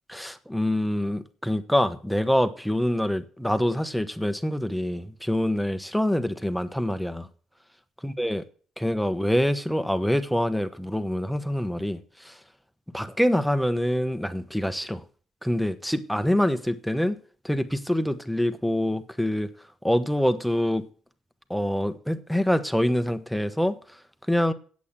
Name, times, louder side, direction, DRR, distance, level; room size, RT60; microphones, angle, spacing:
voice 1, 0.1-7.3 8.0-8.4 8.8-12.4 12.9-15.0 15.4-17.2 17.4-19.5 19.8-20.8 21.5-24.0 24.3-24.5, equal, ahead, 1.1 m, -25 dB
8.4 x 8.3 x 7.3 m
cardioid pair, 90°, 0 cm